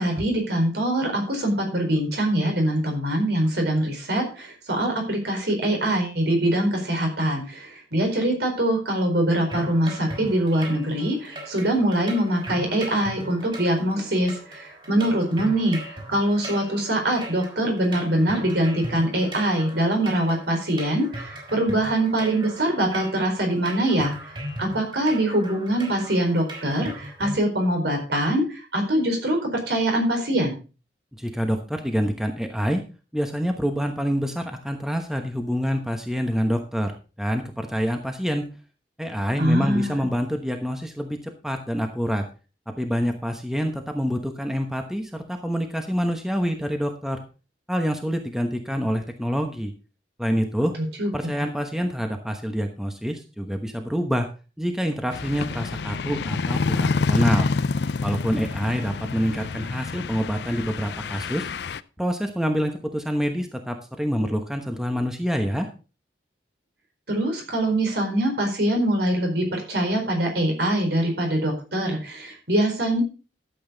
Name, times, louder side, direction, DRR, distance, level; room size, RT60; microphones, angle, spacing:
voice 1, 0.0-15.8 16.1-24.1 24.6-30.6 39.4-40.0 50.8-51.1 67.1-73.0, right 1 dB, 70° right, 2 dB, 4.5 m, -23 dB
sound 1, 9.5-27.4, right 1 dB, 30° right, 4.2 m, -38 dB
voice 2, 31.2-32.8 33.1-38.5 39.0-42.2 42.8-47.2 47.7-49.7 50.2-50.7 51.1-54.3 54.6-57.5 58.0-61.5 62.0-65.7, equal, 5° right, 4 dB, 1.0 m, -26 dB
sound 2, 55.1-61.8, left 4 dB, 70° left, 0.5 m, -27 dB
12.5 x 7.9 x 3.9 m, 0.34 s
head